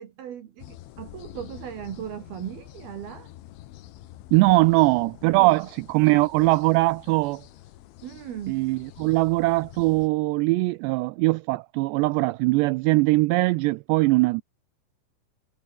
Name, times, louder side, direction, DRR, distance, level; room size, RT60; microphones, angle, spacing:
voice 1, 0.0-3.3 5.3-5.7 8.0-8.6, right 10 dB, 60° right, 3.5 m, -37 dB
sound 1, 0.6-10.1, left 14 dB, 90° left, 3.9 m, -47 dB
voice 2, 4.3-7.4 8.5-14.4, right 22 dB, 85° right, 2.5 m, -21 dB
omnidirectional pair, 5.3 m